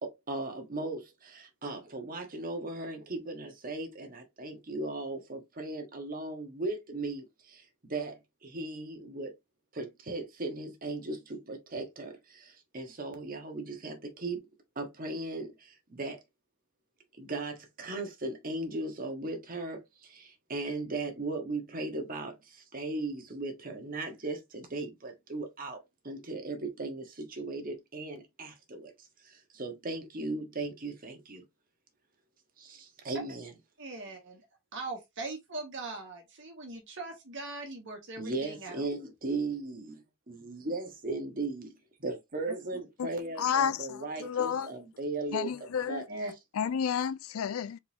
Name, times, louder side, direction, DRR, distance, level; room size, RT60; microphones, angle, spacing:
voice 1, 0.0-9.3 9.7-14.5 14.7-16.2 17.2-25.8 26.0-31.4 32.6-33.5 38.2-40.0 40.3-46.3, right 2 dB, 40° right, 1.3 m, -37 dB
voice 2, 33.8-34.4 34.7-38.8 42.5-42.8 46.1-46.3, right 2 dB, 60° right, 1.6 m, -40 dB
voice 3, 43.4-44.7 45.3-46.0 46.6-47.8, left 8 dB, 70° left, 0.4 m, -31 dB
4.5 x 3.9 x 2.7 m
head